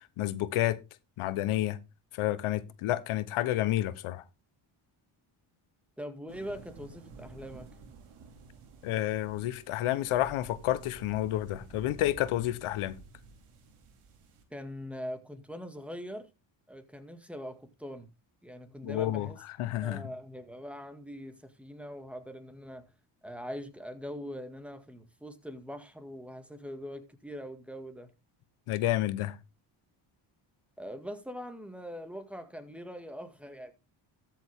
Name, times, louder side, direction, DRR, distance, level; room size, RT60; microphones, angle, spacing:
voice 1, 0.2-0.8 1.2-1.8 2.1-4.2 8.8-13.0 18.8-19.3 19.6-20.0 28.7-29.4, left 14 dB, 85° left, 1.1 m, -30 dB
voice 2, 6.0-7.8 14.5-16.3 16.7-18.1 18.4-19.4 19.8-22.9 23.2-28.1 30.8-33.7, equal, ahead, 2.0 m, -42 dB
sound 1, 6.3-14.4, right 4 dB, 85° right, 2.8 m, -51 dB
13.5 x 7.1 x 3.6 m
cardioid pair, 80°, 49 cm